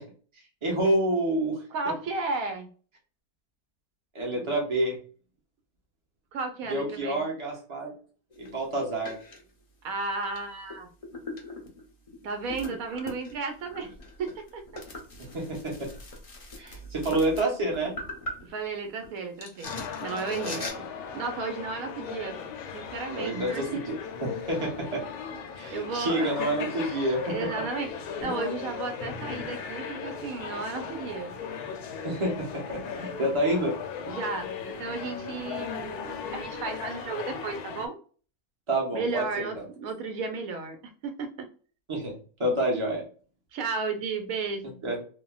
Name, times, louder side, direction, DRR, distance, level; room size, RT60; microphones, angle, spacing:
voice 1, 0.6-1.6 4.1-5.0 6.6-7.9 8.4-9.2 15.2-15.9 16.6-17.9 20.3-20.8 23.1-25.0 25.6-27.3 28.2-28.3 32.0-33.7 38.7-39.7 41.9-42.1 42.4-43.1 44.8-45.0, right 1 dB, 25° right, -2 dB, 0.9 m, -28 dB
voice 2, 1.7-2.7 6.3-7.3 9.8-10.9 12.2-13.9 14.2-14.6 18.4-19.7 20.0-20.6 21.1-22.4 22.7-23.8 25.7-26.4 26.7-27.9 28.2-31.3 34.1-34.5 34.8-38.0 38.9-40.8 41.0-41.5 43.5-44.8, right 4 dB, 75° right, 6 dB, 1.1 m, -33 dB
sound 1, 8.3-8.6 9.0-9.4 10.2-10.4 10.7-19.1 19.4-20.7, left 1 dB, 50° left, 0.4 m, -41 dB
sound 2, 19.6-37.9, left 6 dB, 90° left, 1.1 m, -37 dB
3.3 x 2.2 x 2.3 m, 0.40 s
omnidirectional pair, 1.6 m